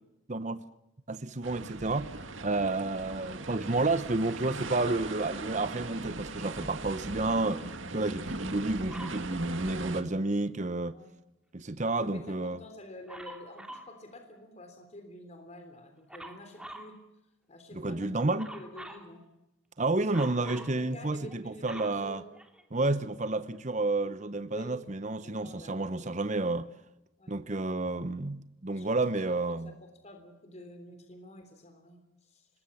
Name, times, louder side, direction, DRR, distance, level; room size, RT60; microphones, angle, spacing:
voice 1, 1.1-10.9 11.5-12.6 17.7-18.5 19.8-22.2 22.7-26.7 27.3-29.7, right 2 dB, 35° right, 0.9 m, -30 dB
sound 1, 1.4-10.0, right 3 dB, 80° right, 2.1 m, -40 dB
Dog, 8.9-9.3 13.1-13.9 16.1-16.9 18.4-19.1 20.1-20.8 21.3-22.8 23.6-23.7, right 1 dB, 5° right, 2.6 m, -45 dB
voice 2, 12.0-17.0 17.5-19.2 19.9-22.3 24.5-24.8 25.1-26.4 27.2-27.4 28.7-32.5, left 1 dB, 35° left, 3.5 m, -49 dB
25.5 x 21.0 x 7.1 m
head